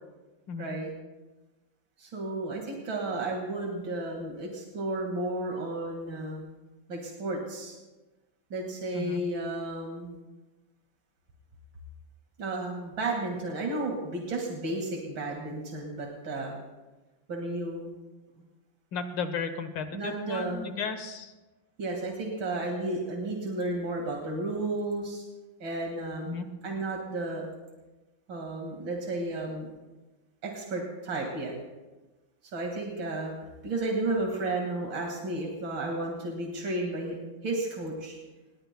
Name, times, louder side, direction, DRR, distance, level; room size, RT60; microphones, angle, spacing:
voice 1, 0.6-0.9 2.0-6.4 6.9-7.8 8.5-10.2 12.4-16.6 17.3-17.9 19.9-20.7 21.8-25.2 25.6-27.5 28.3-29.7 30.4-31.5 32.5-33.3 33.6-38.2, right 2 dB, 80° right, 0 dB, 2.7 m, -33 dB
voice 2, 18.9-21.3 26.2-26.5, left 5 dB, 75° left, 8 dB, 1.9 m, -34 dB
27.0 x 20.0 x 2.2 m, 1.2 s
omnidirectional pair, 2.0 m